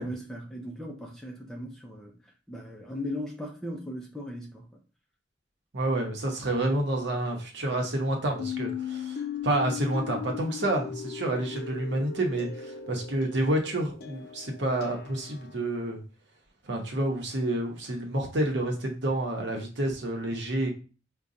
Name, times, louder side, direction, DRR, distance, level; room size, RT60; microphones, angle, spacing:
voice 1, 0.0-2.2 2.5-4.8, left 1 dB, 5° left, 0.5 m, -38 dB
voice 2, 5.7-16.0 16.6-20.7, right 1 dB, 75° right, 0.9 m, -29 dB
sound 1, 8.4-15.7, left 7 dB, 55° left, 0.3 m, -38 dB
4.8 x 2.3 x 2.6 m
head